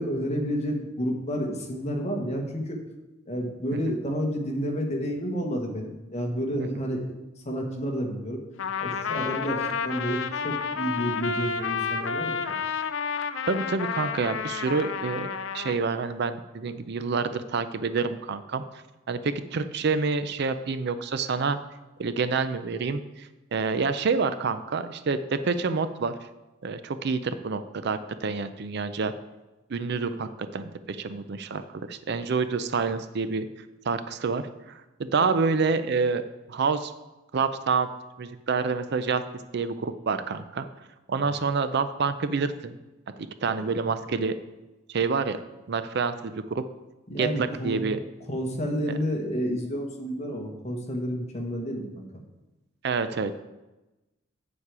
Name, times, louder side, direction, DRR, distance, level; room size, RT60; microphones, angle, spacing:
voice 1, 0.0-2.8 3.3-7.1 7.4-8.4 8.8-12.6 43.6-43.7 47.1-47.8 48.3-52.0, equal, 35° left, 1 dB, 1.4 m, -30 dB
Trumpet, 8.6-15.8, left 6 dB, 70° left, 0.5 m, -30 dB
voice 2, 13.5-15.3 15.5-18.6 19.1-21.6 22.0-26.2 26.6-29.1 29.7-33.5 33.8-36.2 36.5-36.9 37.3-37.9 38.2-39.2 39.5-40.6 41.1-42.7 43.2-44.4 44.9-45.4 45.7-46.6 47.2-48.0 52.8-53.4, right 4 dB, 55° right, 12 dB, 0.5 m, -27 dB
8.2 x 7.3 x 4.8 m, 1.0 s
head